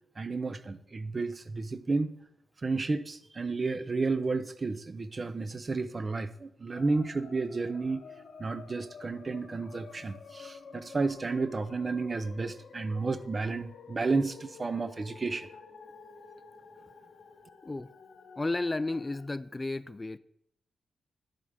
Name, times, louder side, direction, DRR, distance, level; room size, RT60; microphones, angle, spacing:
voice 1, 0.2-2.1 2.6-8.0 8.4-15.5, right 3 dB, 40° right, 12 dB, 0.6 m, -32 dB
sound 1, 6.7-19.3, left 5 dB, 80° left, 1.0 m, -50 dB
voice 2, 18.4-20.2, left 2 dB, 25° left, 15 dB, 0.3 m, -33 dB
10.5 x 3.5 x 6.6 m, 0.74 s
cardioid pair, 60°, 0 cm